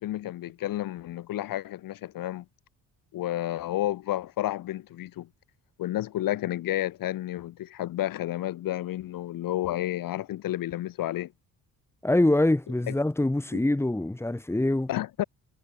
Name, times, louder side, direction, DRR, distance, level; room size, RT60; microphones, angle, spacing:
voice 1, 0.0-2.4 3.1-5.3 5.8-11.3 12.9-13.0 13.5-13.6 14.9-15.2, left 14 dB, 75° left, 7.2 m, -31 dB
voice 2, 12.0-14.9, left 1 dB, 5° left, 7.7 m, -24 dB
cardioid pair, 150°, 34 cm